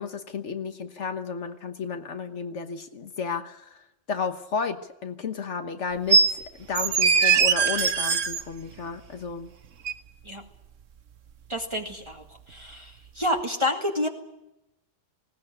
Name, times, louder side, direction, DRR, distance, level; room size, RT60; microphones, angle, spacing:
voice 1, 0.0-6.2 6.6-9.5, left 5 dB, 70° left, 7 dB, 1.5 m, -33 dB
sound 1, 6.1-6.3 6.7-8.4 9.9-10.0, right 5 dB, 80° right, 1.4 m, -20 dB
voice 2, 11.5-14.1, left 1 dB, 25° right, 1 dB, 1.9 m, -29 dB
19.5 x 18.0 x 8.9 m, 0.89 s
omnidirectional pair, 1.3 m